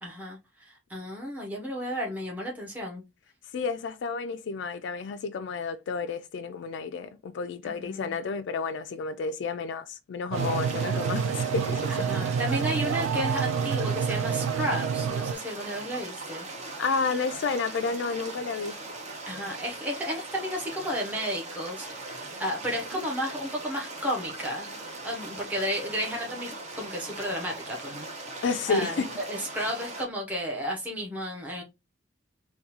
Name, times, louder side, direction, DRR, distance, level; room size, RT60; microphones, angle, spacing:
voice 1, 0.0-3.0 7.6-8.1 11.9-16.5 19.3-24.8 25.0-31.6, equal, 10° right, 0.8 m, -33 dB
voice 2, 3.5-12.1 16.8-18.8 28.4-29.1, left 4 dB, 65° left, 0.3 m, -31 dB
sound 1, 10.3-30.1, right 2 dB, 35° right, 0.7 m, -40 dB
sound 2, 10.3-15.3, right 7 dB, 90° right, 0.3 m, -28 dB
3.5 x 2.3 x 2.8 m
head